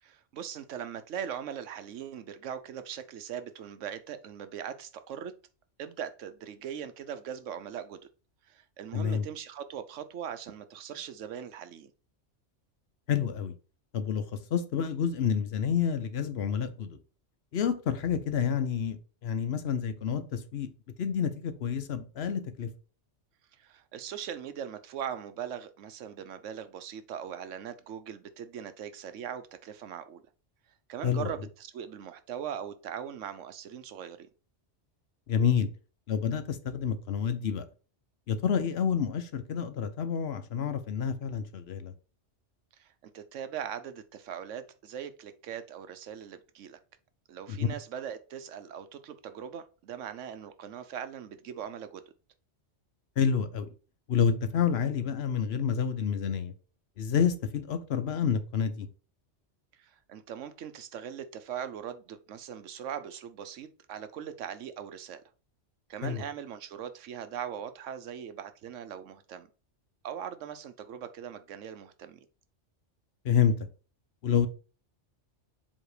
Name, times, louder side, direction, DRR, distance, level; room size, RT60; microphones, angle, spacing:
voice 1, 0.0-5.3 5.8-8.0 8.4-11.9 23.5-30.2 30.9-34.3 42.8-46.8 47.3-52.0 59.8-65.2 65.9-69.5 70.0-72.2, right 8 dB, 90° right, 1.1 m, -40 dB
voice 2, 8.9-9.2 13.1-13.5 13.9-14.2 14.5-17.0 17.5-20.7 21.0-22.7 31.0-31.3 35.3-35.7 36.1-37.7 38.3-41.9 47.5-47.7 53.2-53.7 54.1-56.5 57.0-58.9 66.0-66.2 73.2-73.7 74.2-74.5, left 7 dB, 65° left, 0.9 m, -28 dB
7.4 x 2.9 x 4.9 m
omnidirectional pair, 1.2 m